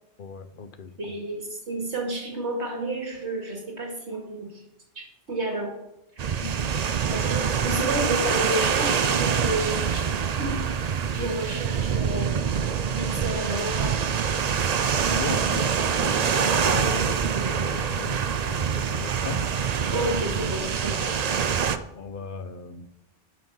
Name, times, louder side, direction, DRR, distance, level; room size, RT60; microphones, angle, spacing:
voice 1, 0.2-1.2 6.4-6.7 11.2-11.4 15.1-20.8 22.0-22.9, left 5 dB, 50° left, 10 dB, 0.9 m, -37 dB
voice 2, 1.0-4.6 5.0-5.7 7.1-10.1 10.4-10.6 11.1-12.3 12.9-14.3 19.9-21.2, right 1 dB, 75° right, 0 dB, 2.6 m, -31 dB
sound 1, 6.2-21.8, right 7 dB, 50° right, 0.5 m, -25 dB
11.0 x 6.2 x 5.5 m, 0.86 s
omnidirectional pair, 1.2 m